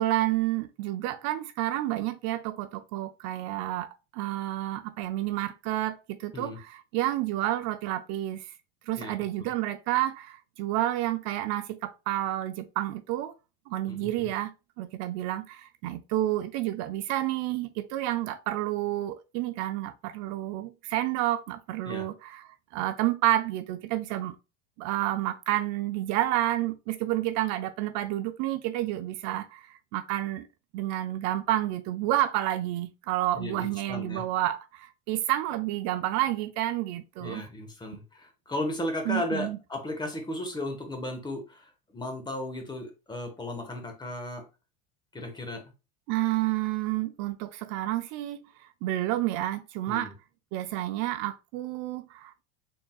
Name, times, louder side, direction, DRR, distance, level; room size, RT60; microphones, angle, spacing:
voice 1, 0.0-8.5 8.9-13.3 13.7-14.5 14.8-24.4 24.8-30.5 30.7-37.4 39.1-39.6 46.1-50.1 50.5-52.4, right 14 dB, 60° right, 0.5 m, -30 dB
voice 2, 9.0-9.5 13.9-14.3 21.8-22.1 33.3-34.2 37.2-44.4 45.1-45.6 49.9-50.1, left 1 dB, 15° left, 1.1 m, -35 dB
3.9 x 3.7 x 2.3 m
supercardioid pair, 120°, 32 cm